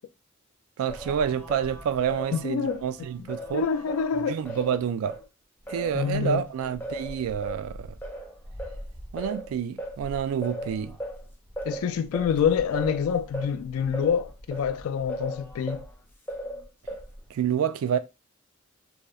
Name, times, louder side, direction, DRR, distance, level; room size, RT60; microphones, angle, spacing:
voice 1, 0.8-3.6 4.3-5.2 5.7-7.9 9.1-11.0 17.3-18.0, right 8 dB, 90° right, 0.3 m, -28 dB
Singing, 0.9-5.2 5.7-15.9 16.3-17.3, right 1 dB, 10° left, 0.4 m, -38 dB
voice 2, 2.3-2.8 3.2-4.4 5.9-6.5 11.6-15.8, left 7 dB, 80° left, 0.3 m, -27 dB
2.8 x 2.0 x 2.3 m
head